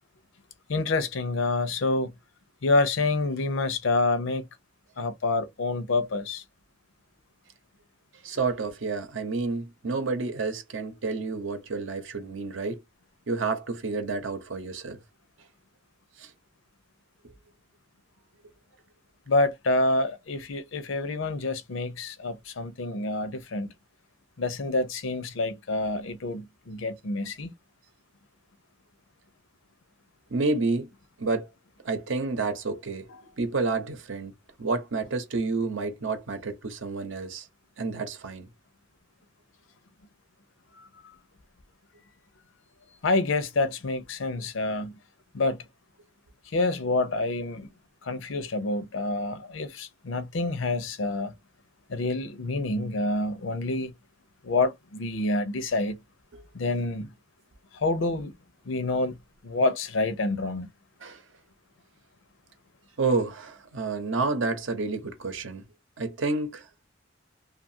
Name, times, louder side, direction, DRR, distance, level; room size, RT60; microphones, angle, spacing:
voice 1, 0.7-2.1 2.6-4.5 5.0-6.4 19.3-23.7 24.4-27.5 40.8-40.9 43.0-44.9 45.3-45.6 46.5-47.7 48.0-51.3 51.9-53.9 54.4-56.0 56.5-57.1 57.7-58.3 58.7-59.2 59.4-60.7, left 2 dB, 75° left, 0.6 m, -27 dB
voice 2, 8.2-12.8 13.3-15.0 16.2-16.3 30.3-30.9 31.2-31.5 31.8-33.1 33.4-34.3 34.6-37.5 37.8-38.5 56.3-56.4 61.0-61.2 63.0-65.6 66.0-66.7, right 3 dB, 70° right, 0.8 m, -29 dB
2.7 x 2.4 x 2.6 m
head